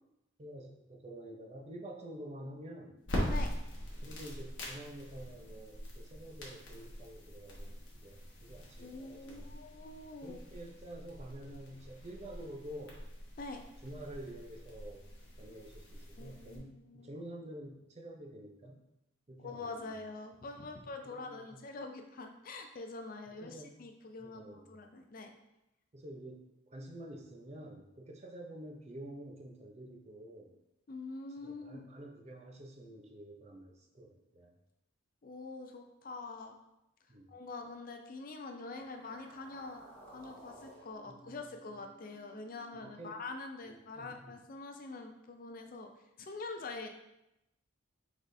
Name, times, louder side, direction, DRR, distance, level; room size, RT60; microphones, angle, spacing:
voice 1, 0.4-3.0 4.0-9.5 10.2-13.0 13.8-15.1 15.4-18.8 19.3-19.9 21.0-21.7 23.4-23.8 24.2-24.7 25.9-30.5 31.4-34.5 37.1-37.4 41.1-41.8 42.7-43.2 43.9-44.4, right 1 dB, 30° right, 1 dB, 0.5 m, -49 dB
sound 1, 3.0-16.6, equal, 60° left, 1.1 m, -43 dB
voice 2, 8.8-10.4 13.4-13.6 16.2-17.1 19.4-25.3 30.9-31.8 35.2-36.6 37.3-39.8 40.1-45.9 46.2-46.9, left 3 dB, 45° left, 5 dB, 0.4 m, -45 dB
sound 2, 38.6-42.9, right 1 dB, 10° left, 1.0 m, -57 dB
4.8 x 4.1 x 2.7 m, 0.88 s
head